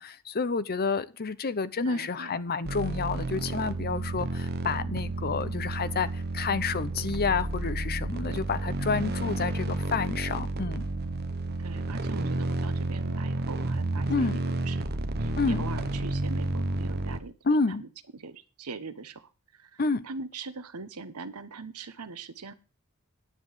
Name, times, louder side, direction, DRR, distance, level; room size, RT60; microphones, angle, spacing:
voice 1, 0.0-10.8 14.1-14.4 15.4-15.6 17.4-17.8 19.8-20.0, left 4 dB, 45° left, 0.7 m, -29 dB
voice 2, 1.8-2.4 11.6-14.9 15.1-17.9 18.1-22.5, right 4 dB, 90° right, 1.1 m, -42 dB
sound 1, 2.7-17.2, right 2 dB, 45° right, 1.0 m, -31 dB
10.0 x 7.6 x 6.6 m
head